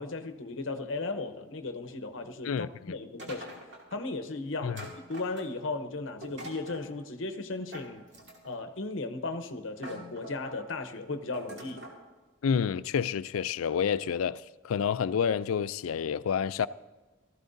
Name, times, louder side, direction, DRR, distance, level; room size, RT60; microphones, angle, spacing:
voice 1, 0.0-3.6 3.9-4.8 5.1-8.0 8.4-11.8, left 3 dB, 65° left, 0.8 m, -36 dB
voice 2, 2.4-2.9 4.6-4.8 12.4-16.7, left 7 dB, 85° left, 0.4 m, -29 dB
sound 1, 3.2-4.0 4.8-5.7 6.2-6.9 7.7-8.6 9.3-9.4 9.8-10.7 11.3-12.0, right 1 dB, 55° right, 2.4 m, -44 dB
17.5 x 14.0 x 2.6 m
head